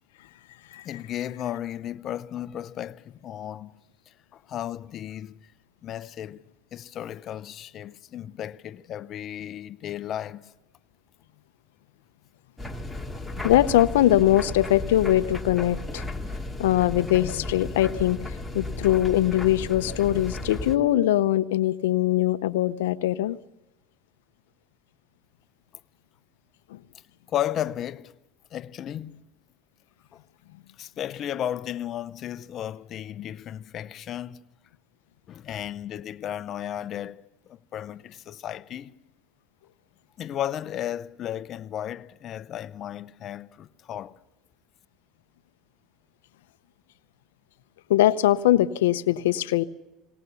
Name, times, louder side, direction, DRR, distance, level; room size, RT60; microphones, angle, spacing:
voice 1, 0.8-5.5 5.8-6.4 6.7-10.5 27.3-28.2 28.5-29.3 30.1-30.2 30.8-34.4 35.3-38.9 40.2-44.2, left 11 dB, 50° left, 0.7 m, -34 dB
sound 1, 12.6-20.8, left 2 dB, 5° left, 2.1 m, -34 dB
voice 2, 13.4-16.0 16.6-18.2 18.5-23.4 26.7-26.8 47.9-49.6, left 13 dB, 90° left, 0.7 m, -22 dB
20.5 x 18.0 x 6.9 m
supercardioid pair, 95°, 0 cm